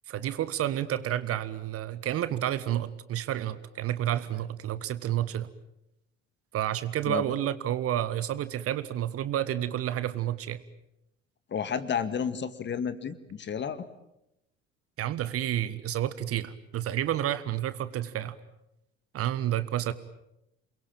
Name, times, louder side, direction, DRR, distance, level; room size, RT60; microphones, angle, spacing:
voice 1, 0.1-5.5 6.5-10.6 15.0-18.4 19.1-19.9, right 12 dB, 40° right, 15 dB, 1.4 m, -30 dB
voice 2, 11.5-13.8, left 7 dB, 30° left, 13 dB, 1.9 m, -31 dB
28.5 x 22.5 x 8.8 m, 0.85 s
figure-of-eight pair, 65°, 36 cm